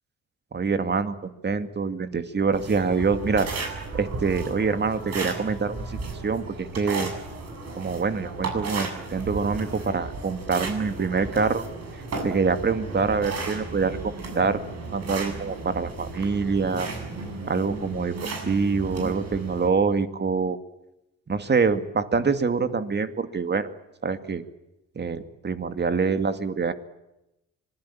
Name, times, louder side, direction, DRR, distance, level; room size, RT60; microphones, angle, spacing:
voice 1, 0.5-3.5 3.9-7.1 7.8-11.6 12.2-16.9 17.5-20.6 21.3-23.7 24.0-24.4 25.0-26.7, right 5 dB, 35° right, 9 dB, 2.4 m, -25 dB
sound 1, 2.5-19.7, right 3 dB, 55° right, 7.7 m, -34 dB
26.0 x 21.0 x 8.8 m, 0.91 s
cardioid pair, 90°, 30 cm